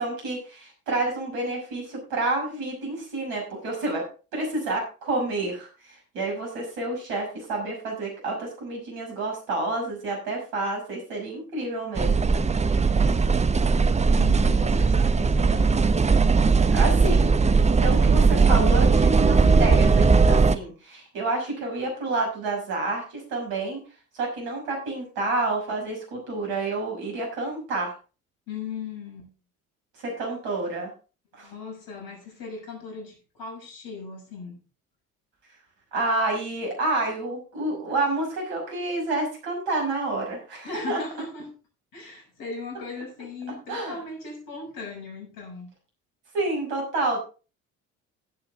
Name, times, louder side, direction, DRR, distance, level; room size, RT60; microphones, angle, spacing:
voice 1, 0.0-4.1 4.3-12.3 12.8-12.9 16.7-17.3 17.6-23.8 24.1-27.9 30.0-30.9 31.3-31.5 35.9-41.0 43.7-44.0 46.3-47.2, right 2 dB, 70° right, 0 dB, 6.0 m, -29 dB
sound 1, 11.9-20.6, right 4 dB, 15° right, 0.7 m, -19 dB
voice 2, 14.1-15.9 28.5-29.3 31.4-34.6 40.6-41.5 41.9-45.7, left 4 dB, 55° left, 1 dB, 6.4 m, -38 dB
16.5 x 8.0 x 3.5 m, 0.34 s
figure-of-eight pair, 50°, 40 cm